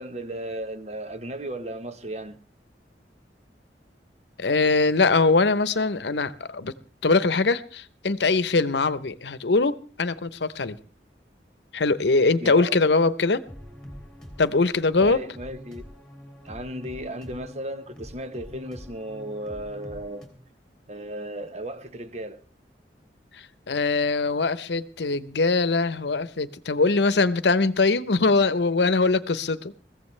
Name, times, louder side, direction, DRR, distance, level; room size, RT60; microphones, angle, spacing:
voice 1, 0.0-2.4 12.4-12.8 15.0-15.8 16.4-20.3 20.9-22.4, right 1 dB, 40° right, 1.0 m, -35 dB
voice 2, 4.4-6.7 7.0-10.8 11.7-13.4 14.4-15.2 23.3-29.7, left 3 dB, 80° left, 0.8 m, -22 dB
sound 1, 13.5-20.3, equal, 5° left, 3.5 m, -44 dB
22.0 x 15.5 x 3.3 m
head